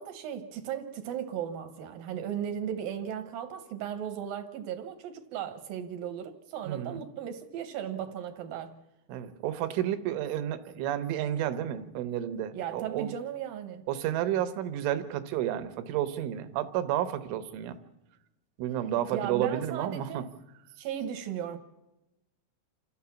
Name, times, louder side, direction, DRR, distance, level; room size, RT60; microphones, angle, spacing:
voice 1, 0.0-8.7 12.5-13.8 19.1-20.3 20.8-21.6, right 9 dB, 70° right, 2.2 m, -36 dB
voice 2, 6.6-7.0 9.1-13.1 13.9-17.8 18.6-20.3, right 11 dB, 85° right, 3.6 m, -31 dB
28.5 x 13.5 x 7.2 m
omnidirectional pair, 5.4 m